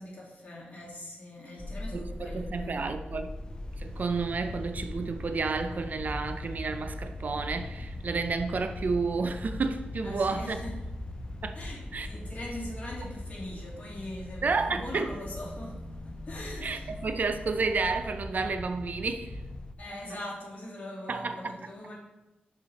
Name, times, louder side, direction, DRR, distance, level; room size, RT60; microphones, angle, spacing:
voice 1, 0.0-2.9 10.0-10.8 11.5-17.0 19.8-21.9, left 1 dB, 45° left, 2.2 m, -41 dB
sound 1, 1.6-19.7, left 1 dB, 25° left, 0.5 m, -40 dB
voice 2, 1.9-3.3 3.8-10.6 11.4-11.6 11.9-12.1 14.4-15.1 16.6-19.4 21.1-21.5, right 4 dB, 55° right, 0.4 m, -31 dB
5.6 x 4.9 x 4.0 m
wide cardioid pair, 95°, 3 cm